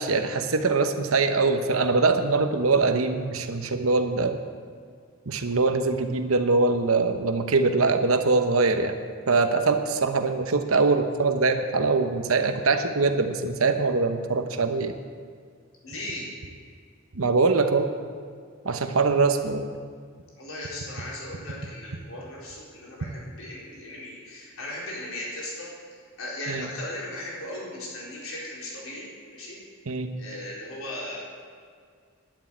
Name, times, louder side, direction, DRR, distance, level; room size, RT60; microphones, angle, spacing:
voice 1, 0.0-4.4 5.3-9.0 9.3-14.9 17.1-17.9 18.6-19.6 26.5-26.7 29.9-30.1, right 3 dB, 85° right, 7 dB, 1.0 m, -23 dB
voice 2, 15.8-16.3 20.4-25.7 26.2-29.6 30.2-31.3, left 1 dB, 75° left, -5 dB, 4.2 m, -37 dB
11.0 x 7.7 x 8.8 m, 2.1 s
head